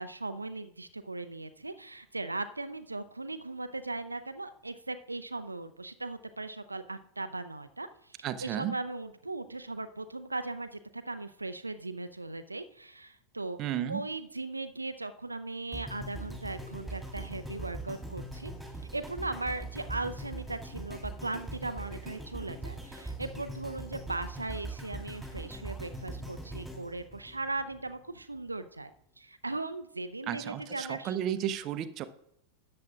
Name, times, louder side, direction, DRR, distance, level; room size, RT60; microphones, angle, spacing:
voice 1, 0.0-13.6 13.9-18.5 18.9-28.9 29.2-31.2, right 2 dB, 80° right, 10 dB, 0.4 m, -38 dB
voice 2, 8.2-8.8 13.6-14.0 30.3-32.0, right 10 dB, 35° right, 11 dB, 0.6 m, -33 dB
sound 1, 15.7-27.9 28.5-28.6, right 2 dB, ahead, 2.7 m, -41 dB
13.0 x 8.6 x 2.4 m, 0.77 s
figure-of-eight pair, 90°, 0 cm